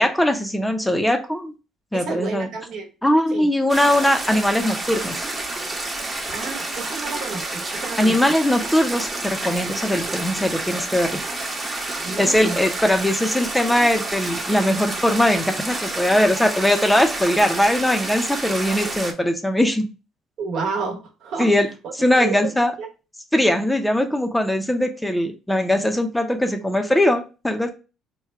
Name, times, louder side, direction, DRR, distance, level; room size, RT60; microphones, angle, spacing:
voice 1, 0.0-1.5 1.9-2.5 3.0-5.3 8.0-11.2 12.2-19.9 21.4-21.7 21.9-22.7 23.3-27.7, left 1 dB, 5° left, 5 dB, 0.6 m, -20 dB
voice 2, 1.9-2.9 3.3-3.5 6.3-8.2 12.0-12.6 20.4-21.5 21.8-22.5 22.8-22.9, right 4 dB, 65° right, 2 dB, 1.0 m, -30 dB
sound 1, 3.7-19.1, right 2 dB, 25° right, 0.9 m, -29 dB
3.5 x 2.2 x 4.4 m, 0.32 s
cardioid pair, 90°, 0 cm